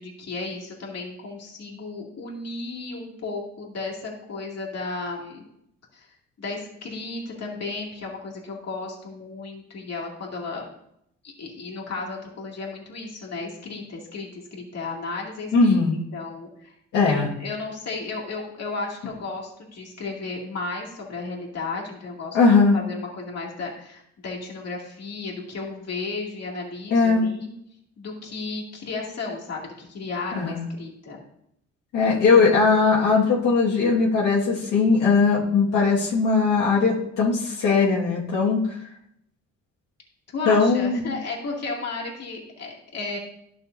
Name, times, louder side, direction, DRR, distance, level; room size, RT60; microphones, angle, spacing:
voice 1, 0.0-5.4 5.9-10.7 11.2-16.7 17.1-22.4 22.7-27.5 28.0-31.2 32.0-32.6 40.3-43.2, left 3 dB, 55° left, -2 dB, 2.6 m, -34 dB
voice 2, 15.5-16.0 16.9-17.3 22.3-22.8 26.9-27.2 30.4-30.7 31.9-38.8 40.5-41.0, left 4 dB, 85° left, -7 dB, 1.9 m, -19 dB
12.0 x 6.5 x 2.7 m, 0.75 s
cardioid pair, 90°, 30 cm